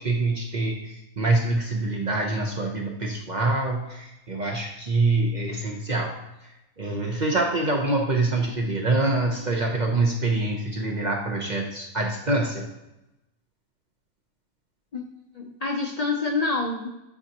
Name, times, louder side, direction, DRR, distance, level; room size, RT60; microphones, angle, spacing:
voice 1, 0.0-6.1 6.8-12.7, right 2 dB, 45° right, 0 dB, 0.7 m, -25 dB
voice 2, 15.3-16.9, left 3 dB, 55° left, 0 dB, 0.4 m, -27 dB
9.1 x 4.0 x 2.9 m, 0.93 s
omnidirectional pair, 1.5 m